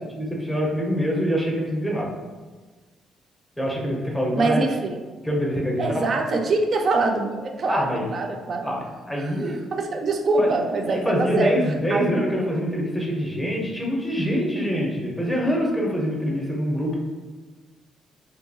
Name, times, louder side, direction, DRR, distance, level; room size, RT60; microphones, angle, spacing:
voice 1, 0.1-2.1 3.6-4.6 5.2-6.1 7.7-8.1 8.6-9.5 10.4-10.5 10.9-17.0, equal, 10° left, -2 dB, 0.6 m, -25 dB
voice 2, 4.3-5.1 5.8-8.7 9.2-11.5 11.9-12.3, right 3 dB, 50° right, 3 dB, 0.4 m, -24 dB
2.7 x 2.2 x 2.6 m, 1.4 s
cardioid pair, 90°, 0 cm